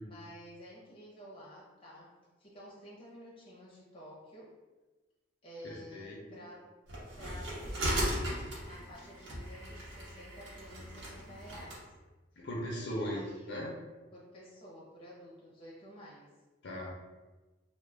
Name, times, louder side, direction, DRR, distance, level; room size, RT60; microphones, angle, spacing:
voice 1, 0.0-2.1 2.4-4.5 5.4-6.7 7.2-8.2 8.6-11.8 12.9-13.6 14.1-16.3, equal, 30° left, -5 dB, 0.7 m, -51 dB
voice 2, 5.9-6.4 12.4-13.2 13.5-13.7 16.6-16.9, equal, 60° left, -3 dB, 0.5 m, -38 dB
sound 1, 6.9-11.8, right 1 dB, 75° right, 0.7 m, -37 dB
2.3 x 2.0 x 3.2 m, 1.2 s
head